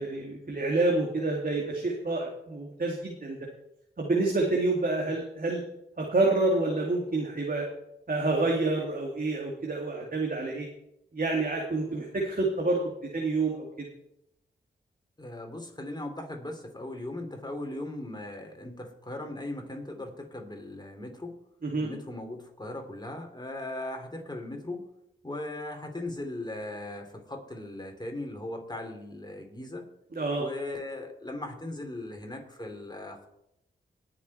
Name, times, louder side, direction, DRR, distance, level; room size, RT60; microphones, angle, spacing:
voice 1, 0.0-3.4 4.0-5.6 6.0-7.7 8.1-10.7 11.1-12.8 13.1-13.9 21.6-21.9 30.1-30.4, right 2 dB, 45° right, -1 dB, 2.4 m, -28 dB
voice 2, 15.2-21.4 21.8-24.8 25.2-29.9 30.4-33.3, left 1 dB, 20° left, 3 dB, 3.2 m, -38 dB
19.0 x 6.7 x 4.3 m, 0.81 s
supercardioid pair, 40°, 20 cm